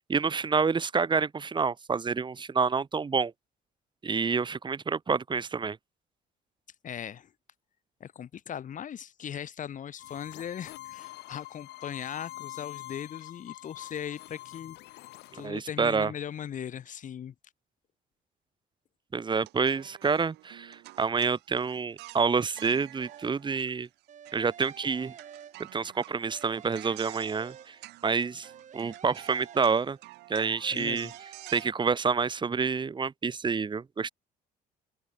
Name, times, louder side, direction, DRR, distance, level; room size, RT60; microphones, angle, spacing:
voice 1, 0.0-3.3 4.0-5.8 15.3-16.1 19.1-23.9 24.3-25.1 25.7-27.8 28.0-28.5 28.7-30.0 30.3-31.1 31.5-34.1, right 5 dB, 25° right, 2.3 m, -28 dB
voice 2, 6.8-7.3 8.0-15.0 15.3-17.3 30.7-31.1, left 9 dB, 50° left, 4.3 m, -39 dB
sound 1, 10.0-15.5, left 17 dB, 85° left, 3.9 m, -45 dB
sound 2, 19.3-24.0 24.2-31.7, right 19 dB, 90° right, 6.3 m, -50 dB
sound 3, 23.0-23.6 24.1-25.9 26.3-28.1 28.4-30.2 30.6-31.7, right 8 dB, 45° right, 3.5 m, -50 dB
open air
cardioid pair, 110°, 17 cm